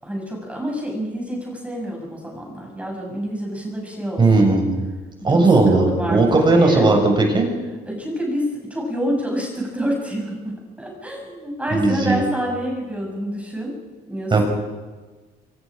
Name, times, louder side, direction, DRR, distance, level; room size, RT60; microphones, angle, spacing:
voice 1, 0.0-4.4 5.3-6.2 6.5-6.9 7.9-13.7 14.1-14.4, equal, 10° right, -1 dB, 7.2 m, -27 dB
voice 2, 4.2-4.8 5.2-7.5 11.7-12.2 14.3-14.4, right 3 dB, 25° right, 2 dB, 6.0 m, -16 dB
25.0 x 23.0 x 5.1 m, 1.3 s
cardioid pair, 110°, 17 cm